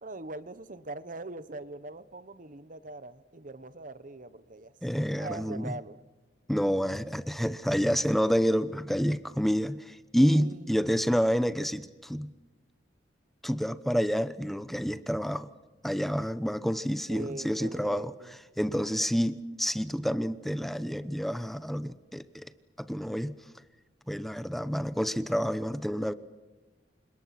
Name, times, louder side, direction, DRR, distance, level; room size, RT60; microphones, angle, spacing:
voice 1, 0.0-6.0 10.2-10.7 17.1-18.3 18.7-19.2, right 2 dB, 50° right, 1.2 m, -42 dB
voice 2, 4.8-5.7 6.5-12.3 13.4-15.5 15.8-18.1 18.6-22.5 22.8-23.4 24.1-26.1, equal, ahead, 0.9 m, -28 dB
30.0 x 26.5 x 6.0 m
head